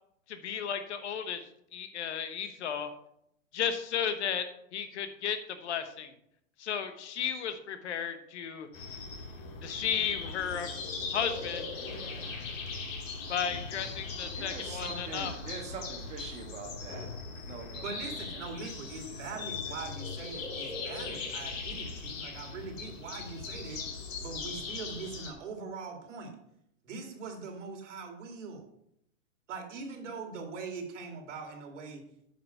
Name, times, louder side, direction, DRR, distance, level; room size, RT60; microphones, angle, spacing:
voice 1, 0.3-1.4 1.7-2.9 3.5-4.4 4.7-6.1 6.6-8.7 9.6-10.7 11.1-11.7 13.3-15.3, left 8 dB, 55° left, 9 dB, 1.2 m, -34 dB
sound 1, 8.7-25.3, left 4 dB, 75° left, 3.1 m, -39 dB
voice 2, 14.3-17.1 17.4-18.5 19.0-19.7, right 4 dB, 15° right, 1 dB, 1.3 m, -44 dB
voice 3, 17.8-23.8 24.2-26.4 26.8-28.6 29.5-32.0, right 4 dB, 65° right, 3 dB, 2.4 m, -42 dB
8.9 x 5.6 x 5.7 m, 0.75 s
hypercardioid pair, 160°, 40 cm